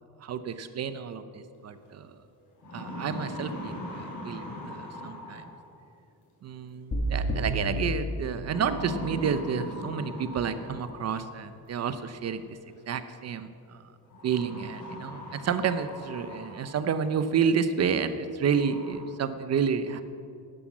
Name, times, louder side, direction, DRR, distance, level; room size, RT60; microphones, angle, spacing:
voice 1, 0.2-2.1 2.7-5.5 6.4-12.6 12.9-13.8 14.2-20.0, right 6 dB, 45° right, 11 dB, 0.6 m, -30 dB
sound 1, 1.8-1.9 2.4-5.8 7.2-7.6 8.4-11.2 12.5-12.6 14.1-17.0 17.5-17.6 18.1-18.2 18.5-19.0, left 1 dB, 55° left, 4.2 m, -40 dB
sound 2, 6.9-9.0, equal, 30° left, 1.7 m, -31 dB
12.0 x 9.9 x 7.4 m, 2.4 s
cardioid pair, 180°, 36 cm